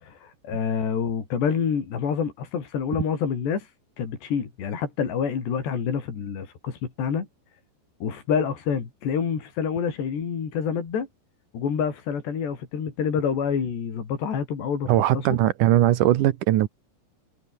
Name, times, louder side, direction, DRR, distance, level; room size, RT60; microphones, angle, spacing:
voice 1, 0.0-3.7 4.0-7.3 8.0-11.1 11.5-15.0, left 7 dB, 75° left, 6.4 m, -27 dB
voice 2, 14.9-16.7, right 13 dB, 70° right, 2.0 m, -20 dB
omnidirectional pair, 5.0 m